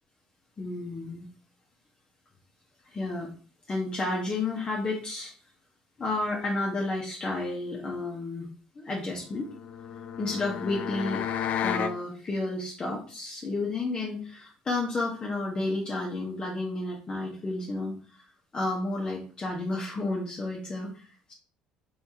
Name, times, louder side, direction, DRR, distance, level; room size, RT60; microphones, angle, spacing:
voice 1, 0.6-1.3 2.9-3.3 3.7-5.3 6.0-8.5 8.8-9.5 10.2-11.2 11.6-17.9 18.5-21.3, left 2 dB, 30° left, -2 dB, 1.0 m, -31 dB
sound 1, 9.4-12.0, left 8 dB, 55° left, 0.4 m, -32 dB
3.4 x 3.4 x 2.8 m, 0.38 s
supercardioid pair, 70°, 3 cm